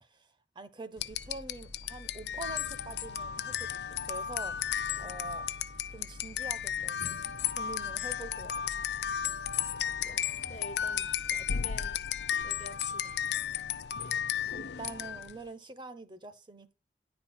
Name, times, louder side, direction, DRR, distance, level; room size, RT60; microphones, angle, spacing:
voice 1, 0.0-5.5 5.9-7.2 7.5-8.5 14.5-16.7, right 2 dB, 25° right, 0.8 m, -45 dB
sound 1, 1.0-15.4, left 9 dB, 75° left, 0.6 m, -34 dB
sound 2, 1.1-12.4, left 1 dB, 85° right, 2.4 m, -51 dB
voice 2, 10.5-12.0 12.4-13.2, left 1 dB, 40° left, 1.0 m, -48 dB
10.5 x 4.4 x 7.2 m
head